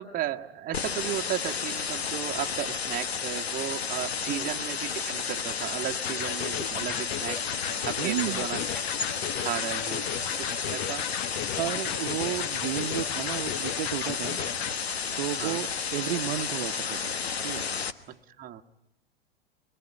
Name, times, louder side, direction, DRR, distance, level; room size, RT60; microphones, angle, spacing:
voice 1, 0.0-7.5 7.8-8.6 9.4-10.1 10.4-11.1 14.4-14.5 15.4-15.6 18.1-18.6, right 12 dB, 30° right, 4 dB, 1.3 m, -35 dB
sound 1, 0.7-17.9, left 6 dB, 85° left, 1.4 m, -32 dB
Electric guitar, 6.1-14.8, left 11 dB, 50° left, 1.0 m, -36 dB
voice 2, 8.0-8.4 11.6-14.4 15.2-17.1 17.4-17.7, right 14 dB, 55° right, 7 dB, 1.1 m, -32 dB
24.0 x 23.5 x 9.8 m, 0.85 s
hypercardioid pair, 110°, 31 cm